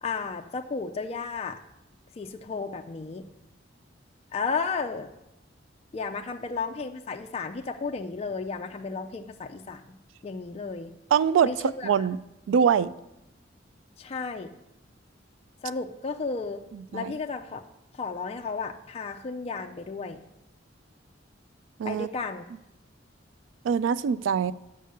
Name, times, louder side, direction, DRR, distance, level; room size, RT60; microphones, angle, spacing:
voice 1, 0.0-1.6 2.2-3.2 4.3-5.1 5.9-10.0 10.2-11.0 11.4-12.1 14.0-14.5 15.6-16.6 16.9-17.6 17.9-20.2 21.8-22.5, left 4 dB, 35° left, 4 dB, 0.4 m, -33 dB
voice 2, 11.1-11.5 11.8-12.2 12.5-12.9 16.9-17.1 21.8-22.1 23.6-24.5, right 7 dB, 80° right, 17 dB, 0.3 m, -23 dB
6.5 x 5.5 x 6.6 m, 0.89 s
head